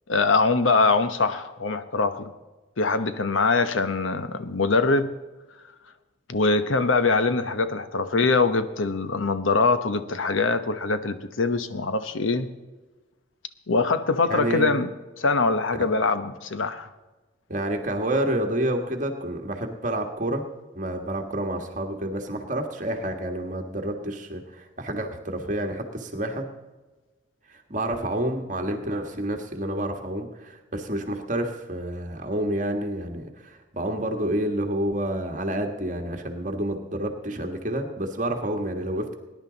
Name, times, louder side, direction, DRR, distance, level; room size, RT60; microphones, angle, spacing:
voice 1, 0.1-2.3 2.8-5.1 6.3-12.5 13.7-14.9 15.2-16.9, left 3 dB, 90° left, 11 dB, 1.0 m, -23 dB
voice 2, 14.2-14.7 15.7-15.9 17.5-20.4 20.7-26.5 27.5-39.1, right 1 dB, 40° right, 4 dB, 1.6 m, -29 dB
20.0 x 10.5 x 4.0 m, 1.2 s
head